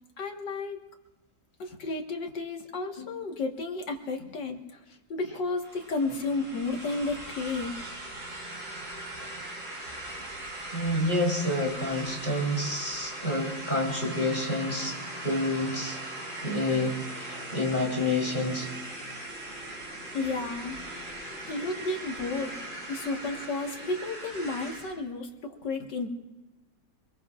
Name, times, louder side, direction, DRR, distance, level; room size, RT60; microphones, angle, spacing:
voice 1, 0.2-0.8 1.6-7.9 20.1-20.8 21.5-22.5 22.9-26.1, left 3 dB, 70° left, 2 dB, 2.2 m, -32 dB
sound 1, 5.6-24.9, right 1 dB, 45° right, 6.2 m, -40 dB
voice 2, 10.7-16.0 16.4-18.7, left 1 dB, 25° left, -2 dB, 3.5 m, -29 dB
26.0 x 21.0 x 2.5 m, 1.0 s
omnidirectional pair, 2.0 m